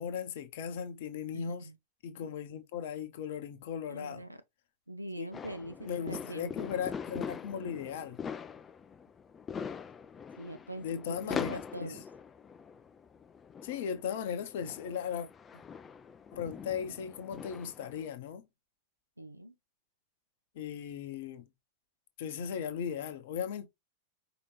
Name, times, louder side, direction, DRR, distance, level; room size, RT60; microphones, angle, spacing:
voice 1, 0.0-1.7 2.0-4.2 5.2-5.3 5.8-8.2 10.8-12.0 13.6-15.3 16.3-18.5 20.5-21.4 22.2-23.7, left 7 dB, 55° left, 0.8 m, -37 dB
voice 2, 1.3-1.8 2.2-2.3 3.9-4.4 4.9-6.7 10.4-12.0 19.2-19.5, right 1 dB, 85° right, 0.4 m, -43 dB
sound 1, 5.3-18.1, left 6 dB, 20° left, 0.4 m, -43 dB
5.0 x 2.9 x 3.1 m
figure-of-eight pair, 90°, 0 cm